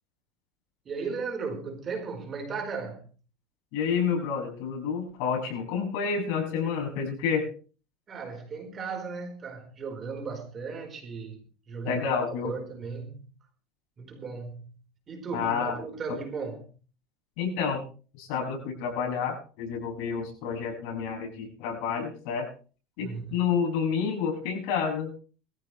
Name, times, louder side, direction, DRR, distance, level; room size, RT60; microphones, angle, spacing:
voice 1, 0.8-3.1 8.1-11.4 11.7-12.1 12.4-13.3 14.0-14.8 15.1-16.7 23.0-23.4, right 5 dB, 30° right, 3 dB, 4.6 m, -36 dB
voice 2, 3.7-7.5 11.8-12.5 15.3-15.7 17.4-17.8 18.1-22.5 23.0-25.1, left 6 dB, 75° left, 1 dB, 6.8 m, -29 dB
21.0 x 14.5 x 3.3 m, 0.38 s
cardioid pair, 140°, 0 cm